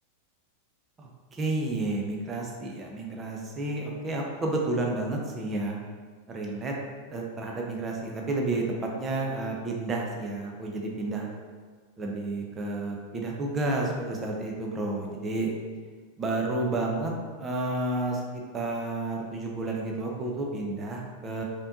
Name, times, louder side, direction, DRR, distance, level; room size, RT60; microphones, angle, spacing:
voice 1, 1.0-5.8 6.3-6.7 7.1-11.3 12.0-15.5 16.2-17.1 17.4-21.4, right 2 dB, 20° right, 0 dB, 0.7 m, -31 dB
5.3 x 3.0 x 2.6 m, 1.5 s
figure-of-eight pair, 90°, 0 cm